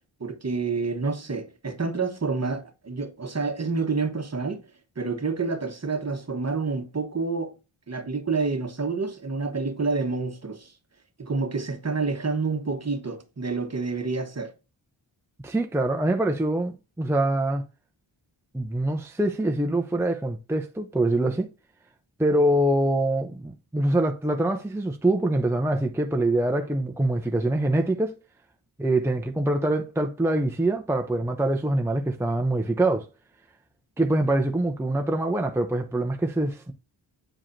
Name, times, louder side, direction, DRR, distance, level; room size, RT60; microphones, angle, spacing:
voice 1, 0.2-4.6 5.0-7.5 7.9-10.7 11.2-14.5, right 4 dB, 35° right, 1.2 m, -28 dB
voice 2, 15.4-17.6 18.5-21.5 22.2-28.2 28.8-33.1 34.0-36.7, right 1 dB, 5° right, 0.7 m, -24 dB
9.0 x 4.8 x 2.6 m
wide cardioid pair, 80°, 48 cm